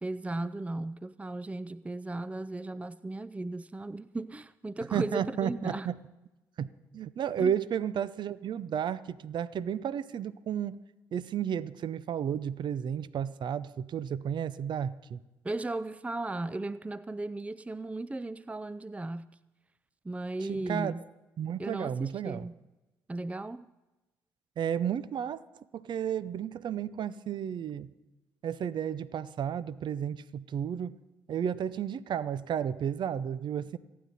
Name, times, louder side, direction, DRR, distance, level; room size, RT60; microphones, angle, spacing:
voice 1, 0.0-5.9 7.4-7.5 15.4-19.3 20.0-21.0 21.6-22.6 23.1-23.7, right 2 dB, 15° right, 0.5 m, -36 dB
voice 2, 4.9-5.9 6.6-6.7 6.9-10.8 11.1-15.2 20.5-20.9 21.4-22.5 24.6-25.4 25.7-27.9 28.4-31.0 31.3-33.8, right 8 dB, 60° right, 0.6 m, -32 dB
28.0 x 9.5 x 4.1 m
hypercardioid pair, 45°, 9 cm